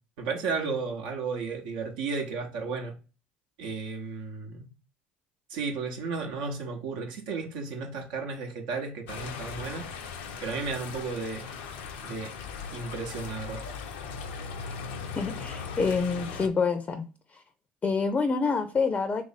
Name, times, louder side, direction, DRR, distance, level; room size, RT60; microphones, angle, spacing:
voice 1, 0.2-2.9 3.6-4.7 5.5-9.8 10.4-11.5 12.0-12.3 12.7-13.6, right 4 dB, 75° right, 0.8 m, -33 dB
sound 1, 9.1-16.5, left 6 dB, 75° left, 0.6 m, -38 dB
voice 2, 15.2-17.0 17.3-17.4 17.8-19.2, left 4 dB, 25° left, 0.5 m, -27 dB
3.0 x 2.6 x 4.1 m
hypercardioid pair, 75°, 5 cm